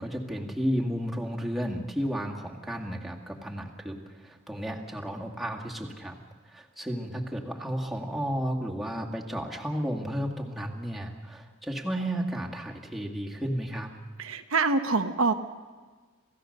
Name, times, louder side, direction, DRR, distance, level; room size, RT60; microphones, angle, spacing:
voice 1, 0.0-6.2 6.4-13.9, equal, ahead, -2 dB, 2.1 m, -33 dB
voice 2, 14.2-15.3, right 3 dB, 75° right, 7 dB, 1.1 m, -25 dB
27.5 x 16.0 x 6.7 m, 1.4 s
head